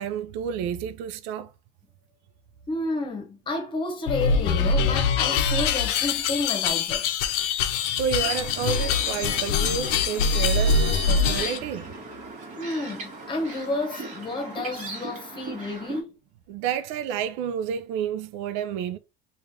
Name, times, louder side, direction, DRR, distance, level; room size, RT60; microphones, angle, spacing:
voice 1, 0.0-1.5 7.9-11.9 16.5-19.0, right 8 dB, 85° right, 0.5 m, -30 dB
voice 2, 2.7-7.0 12.6-16.1, left 2 dB, 25° left, 1.1 m, -31 dB
sound 1, 4.1-11.6, left 5 dB, 90° left, 0.6 m, -24 dB
sound 2, 8.2-16.0, right 3 dB, 40° right, 1.4 m, -40 dB
Vehicle horn car horn honking, 10.3-11.7, right 2 dB, 25° right, 1.7 m, -37 dB
3.2 x 2.5 x 3.6 m
cardioid pair, 145°, 19 cm